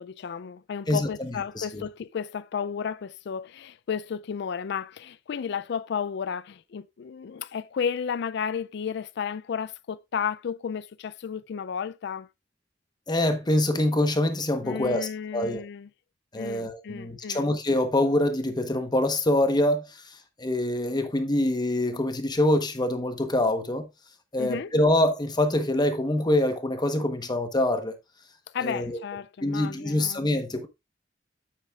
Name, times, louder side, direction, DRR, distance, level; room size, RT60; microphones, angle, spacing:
voice 1, 0.0-12.3 14.6-15.9 16.4-17.5 24.4-24.7 28.5-30.2, left 7 dB, 65° left, 0.4 m, -33 dB
voice 2, 0.9-1.8 13.1-15.6 16.3-23.9 24.3-27.9 28.6-29.0 29.4-30.7, left 1 dB, 25° left, 1.0 m, -25 dB
8.8 x 8.1 x 2.4 m
head